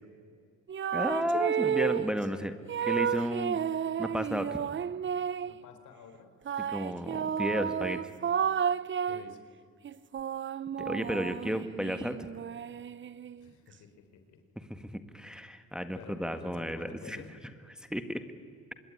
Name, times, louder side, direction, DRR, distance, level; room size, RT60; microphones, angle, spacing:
sound 1, 0.7-2.2 2.7-5.6 6.5-9.3 9.9-13.5, right 8 dB, 40° right, 0.7 m, -32 dB
voice 1, 0.9-2.5 2.8-3.6 4.0-4.5 6.7-8.0 10.8-12.3 14.7-17.2 17.8-18.2, equal, ahead, 8 dB, 1.8 m, -33 dB
voice 2, 4.3-4.7 5.4-6.3 9.1-9.4 13.4-14.4 15.9-17.3, left 6 dB, 75° left, 7 dB, 4.4 m, -50 dB
26.0 x 21.5 x 9.9 m, 2.2 s
cardioid pair, 90°, 30 cm